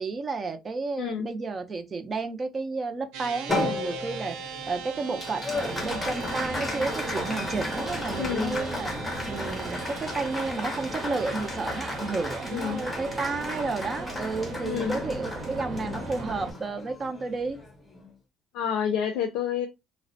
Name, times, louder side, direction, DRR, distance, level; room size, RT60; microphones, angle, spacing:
voice 1, 0.0-17.6, right 3 dB, 25° right, 0.4 m, -32 dB
voice 2, 1.0-1.3 8.2-8.6 12.5-12.8 14.6-15.0 18.5-19.7, left 8 dB, 75° left, 0.4 m, -29 dB
sound 1, 3.1-14.0, right 6 dB, 80° right, 0.5 m, -41 dB
Applause, 3.5-18.1, left 2 dB, 10° left, 0.7 m, -35 dB
sound 2, 5.5-16.5, right 2 dB, 50° right, 0.7 m, -37 dB
2.4 x 2.0 x 2.5 m
cardioid pair, 125°, 0 cm